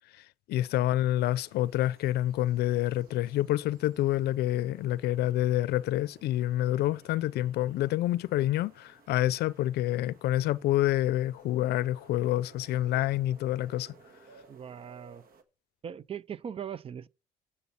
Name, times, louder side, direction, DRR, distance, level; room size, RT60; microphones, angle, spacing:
voice 1, 0.5-13.9, left 14 dB, 75° left, 0.5 m, -27 dB
sound 1, 1.1-15.4, right 4 dB, 60° right, 1.5 m, -58 dB
voice 2, 14.5-15.2 15.8-17.1, right 8 dB, 35° right, 0.4 m, -40 dB
8.3 x 6.9 x 5.6 m
cardioid pair, 110°, 17 cm